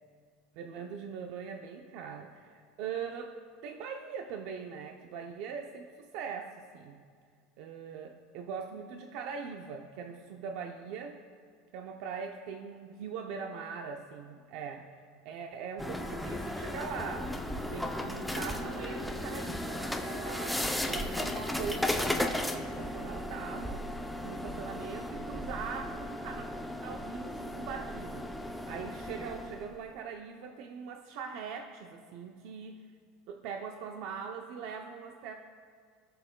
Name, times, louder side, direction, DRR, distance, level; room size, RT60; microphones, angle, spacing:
voice 1, 0.5-3.4 3.6-7.0 7.6-11.2 11.7-14.9 15.2-17.4 17.7-20.6 20.9-23.8 24.2-26.5 26.8-32.8 33.3-35.3, right 6 dB, 60° right, 3 dB, 0.6 m, -41 dB
sound 1, 15.8-29.7, left 1 dB, ahead, 0.5 m, -35 dB
19.0 x 6.7 x 2.2 m, 2.1 s
supercardioid pair, 140°, 0 cm